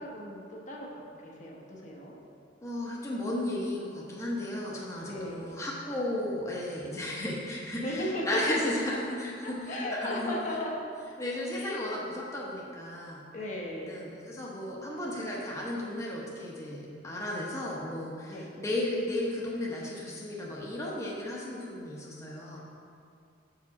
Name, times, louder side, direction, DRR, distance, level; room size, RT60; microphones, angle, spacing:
voice 1, 0.0-2.2 5.0-5.6 7.8-8.7 9.4-10.7 11.5-11.8 13.3-14.1 18.3-18.5, left 1 dB, 45° left, -3 dB, 1.0 m, -36 dB
voice 2, 2.6-10.3 11.2-13.2 13.8-22.6, left 1 dB, 15° left, -5 dB, 0.9 m, -34 dB
6.8 x 4.9 x 4.7 m, 2.4 s
head